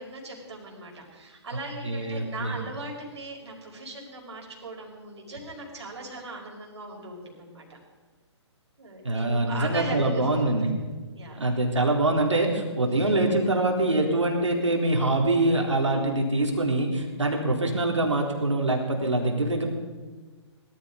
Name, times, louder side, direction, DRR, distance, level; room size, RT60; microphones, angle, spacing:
voice 1, 0.0-7.8 8.8-10.7 11.1-11.4 13.0-13.1, right 2 dB, 65° right, -1 dB, 5.6 m, -39 dB
voice 2, 1.8-2.6 9.0-10.7 11.4-19.7, right 2 dB, 90° right, 1 dB, 3.7 m, -24 dB
20.5 x 12.5 x 5.1 m, 1.4 s
figure-of-eight pair, 135°, 15 cm